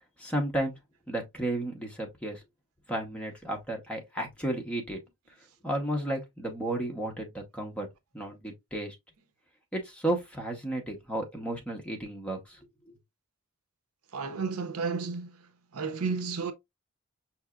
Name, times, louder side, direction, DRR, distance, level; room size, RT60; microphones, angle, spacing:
voice 1, 0.2-0.7 1.1-2.4 2.9-5.0 5.6-7.9 8.1-8.9 9.7-13.0, right 1 dB, 5° left, 0.9 m, -33 dB
voice 2, 14.1-16.5, right 5 dB, 80° right, 0.7 m, -33 dB
5.5 x 2.9 x 2.4 m
head